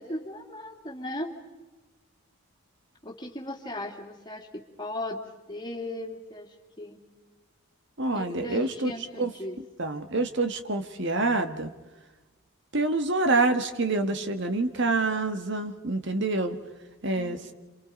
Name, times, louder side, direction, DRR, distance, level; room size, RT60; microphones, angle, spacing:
voice 1, 0.0-1.3 3.0-5.2 5.5-7.0 8.1-9.6 17.1-17.5, left 1 dB, 20° left, -1 dB, 2.7 m, -37 dB
voice 2, 8.0-8.9 9.2-9.3 9.8-11.7 12.7-16.6 17.0-17.4, right 3 dB, 50° right, 8 dB, 1.5 m, -26 dB
28.0 x 27.0 x 5.2 m, 1.2 s
head